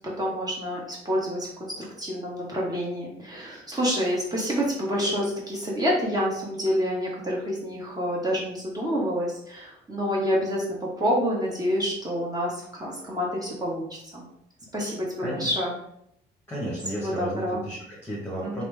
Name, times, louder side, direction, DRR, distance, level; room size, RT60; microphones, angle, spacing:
voice 1, 0.2-14.2 14.7-15.1 15.4-15.8 17.0-17.6 18.4-18.6, equal, 20° right, -5 dB, 1.1 m, -28 dB
voice 2, 15.2-15.5 16.5-18.6, right 1 dB, 10° left, -5 dB, 1.1 m, -33 dB
3.1 x 2.0 x 3.3 m, 0.73 s
cardioid pair, 90°, 20 cm